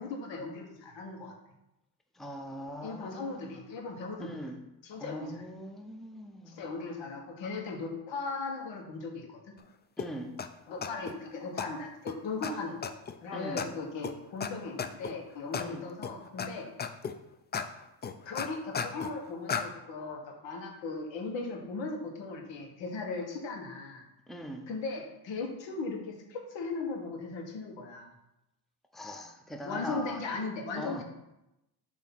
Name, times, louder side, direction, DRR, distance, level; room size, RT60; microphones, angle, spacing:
voice 1, 0.0-1.3 2.8-4.3 4.8-5.4 6.5-9.4 10.7-12.9 13.2-16.7 18.2-24.0 24.7-28.1 29.6-31.0, left 3 dB, 70° left, 2 dB, 1.5 m, -38 dB
voice 2, 2.2-3.6 4.2-4.6 5.0-6.6 10.0-10.3 13.3-13.6 15.6-15.8 24.3-24.6 28.9-30.2 30.8-31.0, equal, ahead, 3 dB, 0.7 m, -41 dB
sound 1, 10.0-10.1 10.4-10.5 10.8-11.1 11.6-11.7 12.1-12.2 12.4-12.5 12.8-13.1 13.6-13.7 14.0-14.1 14.4-14.5 14.8-15.1 15.5-15.7 16.0-16.5 16.8-17.1 17.5-17.7 18.0-19.1 19.5-19.6, left 6 dB, 25° left, 0.4 m, -33 dB
6.8 x 3.2 x 6.0 m, 0.90 s
cardioid pair, 85°, 45 cm